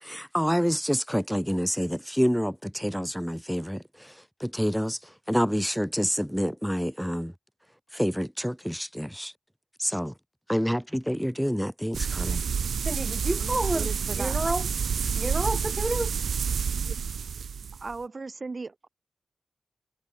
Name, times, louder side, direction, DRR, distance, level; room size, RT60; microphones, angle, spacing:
voice 1, 0.0-4.1 4.4-5.0 5.3-7.3 7.9-9.3 9.8-10.1 10.5-12.4, equal, ahead, 1.4 m, -28 dB
sound 1, 11.9-17.9, right 6 dB, 85° right, 1.1 m, -29 dB
voice 2, 12.9-13.9 14.2-14.6 15.1-16.2, right 1 dB, 15° right, 0.6 m, -29 dB
voice 3, 13.4-14.4 16.8-17.0 17.8-18.9, right 3 dB, 40° right, 1.0 m, -37 dB
wide cardioid pair, 105°, 0 cm